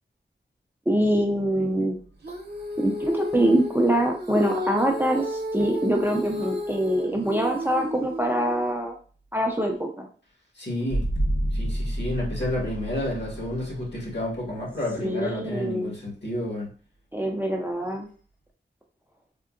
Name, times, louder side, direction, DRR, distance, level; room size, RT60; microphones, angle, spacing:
voice 1, 0.9-2.0 2.8-9.0 9.3-10.1 15.0-15.9 17.1-18.1, right 1 dB, 10° right, 1 dB, 0.5 m, -24 dB
sound 1, 1.7-2.6 4.3-4.4 10.9-15.6, right 1 dB, 40° left, 0.6 m, -30 dB
Female singing, 2.2-8.7, left 1 dB, 55° right, 0.8 m, -33 dB
voice 2, 10.6-11.0 11.5-16.7, left 1 dB, 60° left, -3 dB, 1.4 m, -30 dB
3.6 x 2.1 x 2.4 m, 0.41 s
wide cardioid pair, 70°, 20 cm